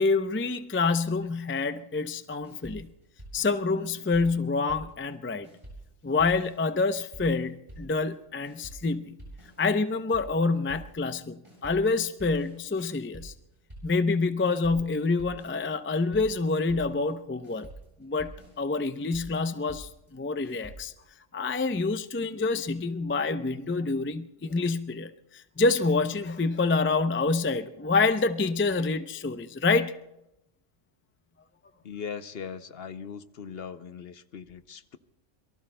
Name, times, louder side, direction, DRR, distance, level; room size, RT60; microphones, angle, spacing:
voice 1, 0.0-2.9 3.3-5.5 6.0-9.2 9.6-13.3 13.8-17.7 18.0-18.3 18.6-20.9 21.3-29.9, left 3 dB, 20° left, 9 dB, 0.4 m, -27 dB
sound 1, 2.4-5.2 5.4-21.1, right 1 dB, 25° right, 7.7 m, -48 dB
voice 2, 31.8-35.0, left 6 dB, 60° left, 11 dB, 0.9 m, -39 dB
27.0 x 23.0 x 2.2 m, 0.87 s
omnidirectional pair, 1.3 m